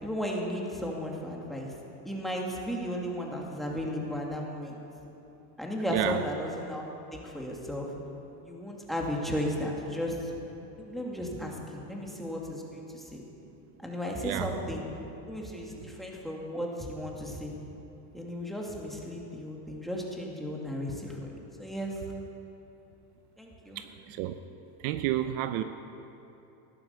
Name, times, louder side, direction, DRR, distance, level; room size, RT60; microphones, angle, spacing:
voice 1, 0.0-1.7 2.0-4.8 5.6-6.9 7.1-7.9 8.4-10.3 10.8-13.2 13.8-14.8 15.3-17.5 18.1-22.0 23.4-23.8, equal, ahead, -2 dB, 2.4 m, -35 dB
voice 2, 23.8-24.4 24.8-25.6, right 13 dB, 65° right, 10 dB, 0.8 m, -30 dB
15.0 x 11.0 x 6.9 m, 2.9 s
supercardioid pair, 115°, 48 cm